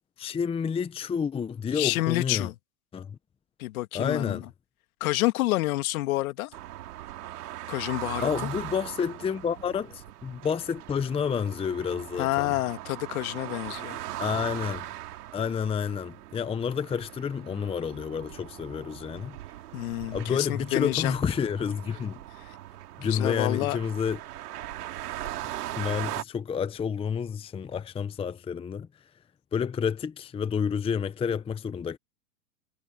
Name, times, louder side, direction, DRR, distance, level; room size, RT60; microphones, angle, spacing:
voice 1, 0.2-2.5 2.9-3.2 3.9-4.4 8.2-12.5 14.2-14.9 15.3-19.4 20.1-22.2 23.0-24.2 25.4-28.9 29.5-32.0, left 7 dB, 10° left, 0.8 m, -29 dB
voice 2, 1.7-2.5 3.6-4.4 5.0-6.5 7.7-8.3 12.2-14.0 19.7-21.1 23.0-23.8, left 18 dB, 60° left, 1.9 m, -28 dB
sound 1, 6.5-26.2, right 14 dB, 75° right, 2.7 m, -40 dB
hypercardioid pair, 120°, 47 cm